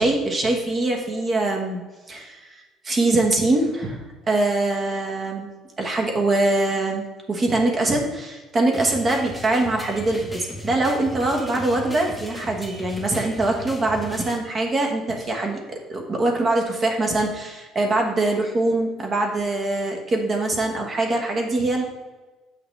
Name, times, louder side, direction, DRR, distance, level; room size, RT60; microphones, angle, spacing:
voice 1, 0.0-1.8 2.1-5.5 5.8-21.8, right 2 dB, 30° right, 2 dB, 1.3 m, -23 dB
sound 1, 8.7-14.4, equal, ahead, 0.8 m, -36 dB
8.1 x 5.8 x 3.3 m, 1.2 s
cardioid pair, 140°, 0 cm